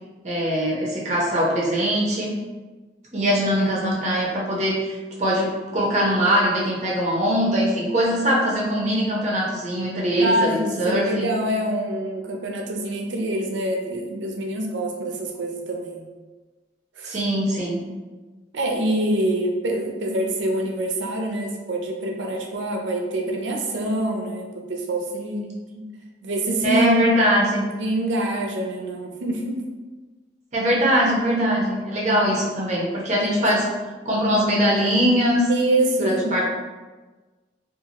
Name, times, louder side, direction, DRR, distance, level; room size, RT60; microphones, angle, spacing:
voice 1, 0.2-2.4 3.1-11.3 17.1-17.9 26.6-27.6 30.5-33.7 34.1-35.5 36.0-36.4, equal, 40° right, -4 dB, 0.7 m, -22 dB
voice 2, 10.2-16.0 17.0-17.2 18.5-25.9 26.2-26.9 27.8-29.7 33.2-33.6 35.5-36.3, right 1 dB, 85° right, 1 dB, 0.5 m, -25 dB
2.7 x 2.5 x 2.8 m, 1.3 s
head